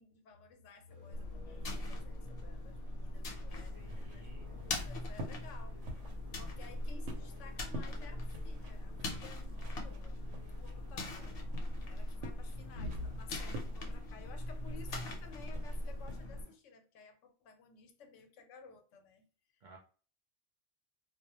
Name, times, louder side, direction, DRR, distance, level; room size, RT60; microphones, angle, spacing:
voice 1, 0.0-6.0 6.4-11.4 11.8-19.3, left 5 dB, 85° left, 0.9 m, -56 dB
Motorcycle, 0.9-16.5, equal, 25° left, 0.4 m, -61 dB
sound 1, 1.1-16.4, left 1 dB, 60° left, 0.8 m, -41 dB
sound 2, 3.5-16.3, equal, 85° right, 0.9 m, -51 dB
voice 2, 3.7-4.5 19.6-19.8, right 3 dB, 55° right, 0.5 m, -55 dB
2.2 x 2.1 x 2.8 m
omnidirectional pair, 1.2 m